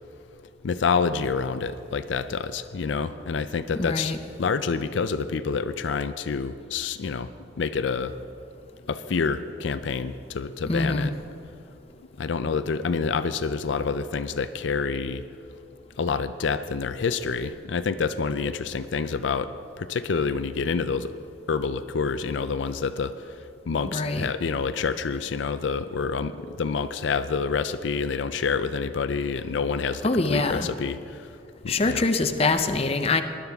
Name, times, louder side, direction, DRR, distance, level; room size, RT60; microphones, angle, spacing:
voice 1, 0.6-4.1 4.4-7.3 7.6-8.1 8.9-11.1 12.2-15.2 16.0-19.5 19.8-21.1 21.5-31.3 31.6-32.0, left 5 dB, 70° left, 11 dB, 0.4 m, -27 dB
voice 2, 3.7-4.2 10.7-11.1 23.9-24.3 30.0-30.7 31.7-33.2, left 3 dB, 30° left, 7 dB, 0.6 m, -24 dB
19.5 x 11.5 x 3.5 m, 2.6 s
head